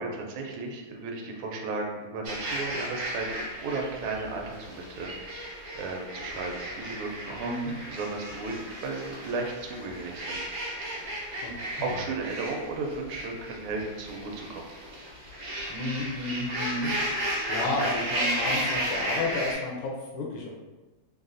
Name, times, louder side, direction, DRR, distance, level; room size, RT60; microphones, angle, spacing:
voice 1, 0.0-7.5 7.9-10.5 11.2-11.4 11.8-14.7, right 3 dB, 80° right, 1 dB, 1.4 m, -35 dB
sound 1, 2.2-19.5, right 1 dB, 60° right, 0.9 m, -34 dB
voice 2, 7.3-7.7 11.4-12.0 15.7-20.5, left 2 dB, 75° left, -1 dB, 1.3 m, -32 dB
3.5 x 2.4 x 2.5 m, 1.2 s
omnidirectional pair, 2.4 m